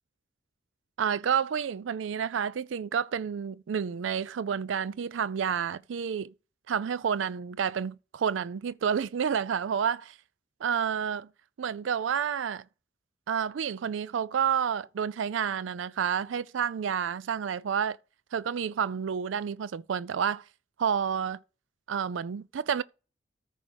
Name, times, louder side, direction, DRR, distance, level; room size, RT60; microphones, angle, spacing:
voice 1, 1.0-6.3 6.7-10.2 10.6-11.3 11.6-12.6 13.3-18.0 18.3-20.5 20.8-21.4 21.9-22.8, right 7 dB, 80° right, 0.4 m, -29 dB
13.5 x 4.8 x 5.1 m
head